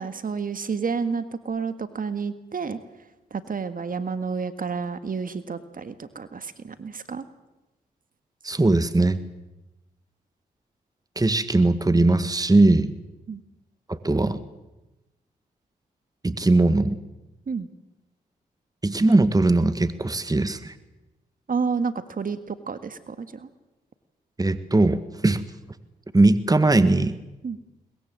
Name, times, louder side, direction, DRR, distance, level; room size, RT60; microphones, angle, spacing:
voice 1, 0.0-2.8 3.3-7.2 13.3-13.4 17.5-17.7 21.5-23.5 27.4-27.6, right 5 dB, 50° right, 11 dB, 1.8 m, -30 dB
voice 2, 8.4-9.2 11.1-12.9 13.9-14.4 16.2-17.0 18.8-20.7 24.4-25.4 26.1-27.2, right 2 dB, 20° right, 13 dB, 1.5 m, -20 dB
22.5 x 20.5 x 7.7 m, 1.0 s
supercardioid pair, 45°, 18 cm